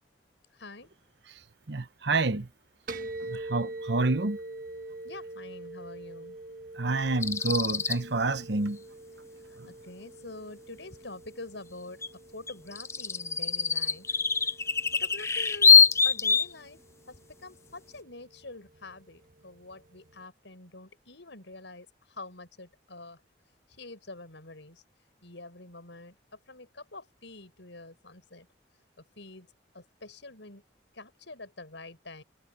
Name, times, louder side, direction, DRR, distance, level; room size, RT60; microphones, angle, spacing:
voice 1, 0.5-0.9 5.0-6.4 9.7-12.0 12.3-14.2 14.9-15.8 16.0-16.8 17.1-23.2 23.7-24.8 25.2-28.5 29.0-30.6 30.9-32.2, left 2 dB, 80° left, 5.2 m, -46 dB
voice 2, 1.7-2.5 3.2-4.4 6.8-8.8 9.6-9.7, right 3 dB, 70° right, 1.0 m, -28 dB
sound 1, 2.9-20.2, right 2 dB, 50° right, 1.3 m, -45 dB
sound 2, 7.2-8.0 12.0-12.1 12.5-16.5, left 6 dB, 15° left, 0.4 m, -23 dB
head